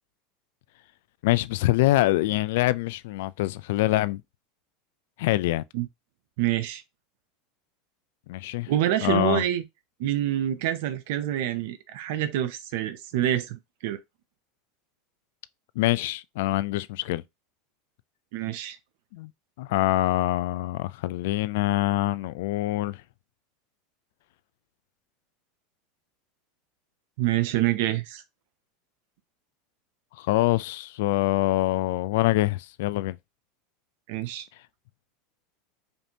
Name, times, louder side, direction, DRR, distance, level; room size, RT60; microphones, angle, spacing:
voice 1, 1.2-4.2 5.2-5.6 8.3-8.7 9.0-9.4 15.8-17.2 19.1-19.3 19.6-23.0 30.2-33.2, left 17 dB, 75° left, 0.3 m, -25 dB
voice 2, 6.4-6.8 8.7-9.6 10.0-14.0 18.3-18.8 27.2-28.2 34.1-34.5, right 13 dB, 70° right, 0.6 m, -26 dB
5.2 x 2.6 x 2.8 m
supercardioid pair, 120°, 0 cm